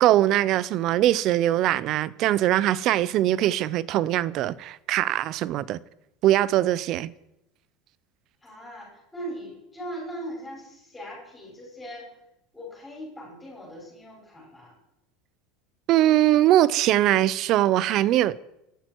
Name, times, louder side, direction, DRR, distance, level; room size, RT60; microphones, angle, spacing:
voice 1, 0.0-5.8 6.2-7.1 15.9-18.4, right 13 dB, 35° right, 0.5 m, -21 dB
voice 2, 8.4-12.1 12.5-14.7, right 1 dB, 5° left, 5.9 m, -39 dB
27.0 x 11.5 x 4.6 m
cardioid pair, 175°, 0 cm